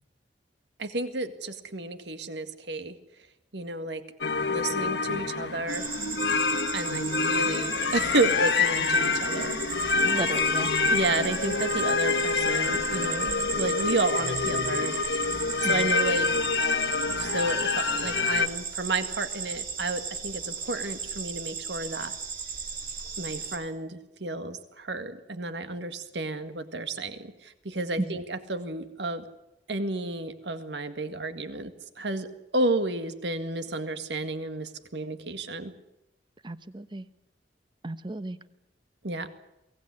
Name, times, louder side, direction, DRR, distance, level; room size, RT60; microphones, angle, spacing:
voice 1, 0.8-3.0 3.5-4.0 4.5-5.9 6.7-10.2 10.9-16.3 17.1-22.2 23.2-29.3 29.7-32.3 32.5-35.7 39.0-39.3, right 2 dB, 80° right, 9 dB, 1.9 m, -31 dB
sound 1, 4.2-18.5, left 4 dB, 75° left, 1.5 m, -27 dB
sound 2, 5.7-23.6, right 6 dB, 55° right, 3.8 m, -36 dB
voice 2, 10.0-10.7 15.6-15.8 28.0-28.2 36.4-37.0 37.8-38.4, right 1 dB, 30° right, 13 dB, 1.0 m, -33 dB
23.0 x 18.0 x 9.8 m, 0.90 s
head